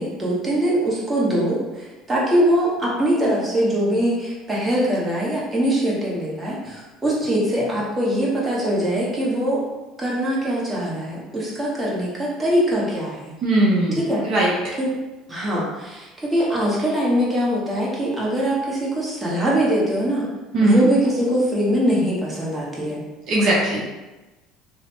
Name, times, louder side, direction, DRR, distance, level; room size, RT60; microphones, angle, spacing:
voice 1, 0.0-9.6 10.0-13.2 13.9-14.2 14.8-14.9 15.3-20.3 20.6-23.0, equal, 15° right, -5 dB, 1.0 m, -22 dB
voice 2, 13.4-14.0 14.2-14.7 20.5-20.9 23.3-23.9, right 1 dB, 55° right, -4 dB, 0.6 m, -19 dB
2.9 x 2.0 x 3.0 m, 1.1 s
hypercardioid pair, 80°, 0 cm